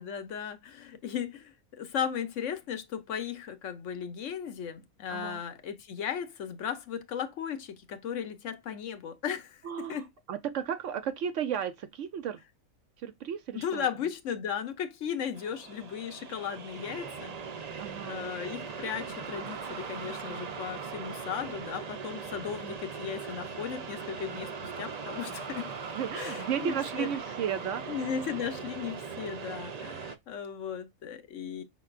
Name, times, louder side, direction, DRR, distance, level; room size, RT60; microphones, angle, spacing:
voice 1, 0.0-10.1 13.5-17.4 18.0-25.7 26.2-27.1 27.9-31.6, left 8 dB, 65° left, 1.1 m, -36 dB
voice 2, 5.1-5.4 9.6-12.4 13.0-13.9 17.8-18.3 25.9-27.8, right 8 dB, 65° right, 0.9 m, -34 dB
sound 1, 15.3-30.2, right 5 dB, 45° right, 0.5 m, -40 dB
5.4 x 3.9 x 2.4 m
omnidirectional pair, 1.5 m